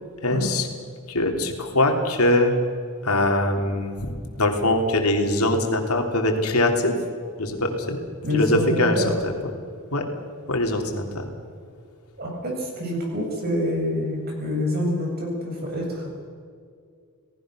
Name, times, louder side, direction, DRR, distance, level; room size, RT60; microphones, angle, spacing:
voice 1, 0.2-0.7 1.1-2.5 3.0-6.9 7.4-8.0 8.3-9.3 9.9-10.0 10.5-11.3, left 1 dB, 80° left, 3 dB, 3.3 m, -22 dB
voice 2, 8.2-9.1 12.2-16.1, left 1 dB, 45° right, -1 dB, 7.7 m, -26 dB
29.0 x 18.5 x 6.4 m, 2.2 s
head